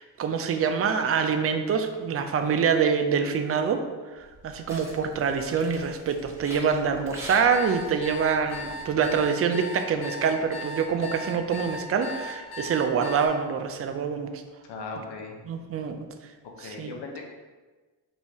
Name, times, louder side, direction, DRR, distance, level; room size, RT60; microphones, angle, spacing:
voice 1, 0.0-3.8 4.4-14.4 15.5-16.1 16.6-16.9, right 6 dB, 35° right, 7 dB, 0.5 m, -25 dB
sound 1, 4.2-9.2, right 1 dB, 5° right, 1.2 m, -44 dB
sound 2, 7.5-13.3, left 1 dB, 40° left, 0.8 m, -37 dB
voice 2, 14.7-15.3 16.6-17.2, left 3 dB, 75° left, 0 dB, 0.9 m, -37 dB
5.4 x 2.6 x 3.0 m, 1.3 s
cardioid pair, 75°, 41 cm